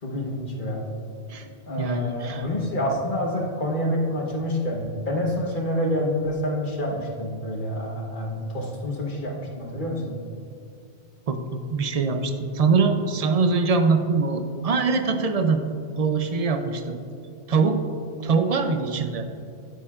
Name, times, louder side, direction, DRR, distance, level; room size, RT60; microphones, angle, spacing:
voice 1, 0.0-0.8 1.7-10.2, left 1 dB, 50° left, -1 dB, 1.3 m, -27 dB
voice 2, 1.8-2.4 11.3-15.6 16.0-17.0 17.5-17.8 18.2-19.3, right 4 dB, 45° right, 7 dB, 0.5 m, -23 dB
10.0 x 10.0 x 2.4 m, 2.5 s
omnidirectional pair, 1.2 m